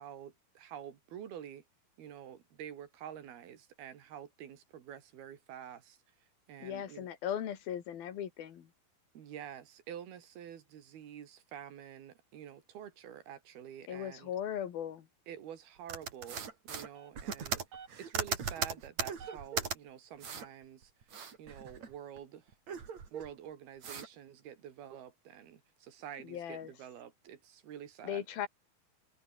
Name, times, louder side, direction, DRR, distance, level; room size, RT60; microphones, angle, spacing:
voice 1, 0.0-1.6 2.0-6.0 6.5-7.1 9.1-14.3 15.3-17.6 18.0-21.1 21.4-22.6 23.1-28.3, right 9 dB, 80° right, 4.3 m, -48 dB
voice 2, 6.6-8.7 13.9-15.1 26.2-26.7 28.0-28.5, left 9 dB, 75° left, 4.0 m, -38 dB
sound 1, 15.9-19.8 20.2-20.5 20.8-22.2 22.5-23.3 23.8-24.1, right 6 dB, 50° right, 4.1 m, -38 dB
omnidirectional pair, 4.4 m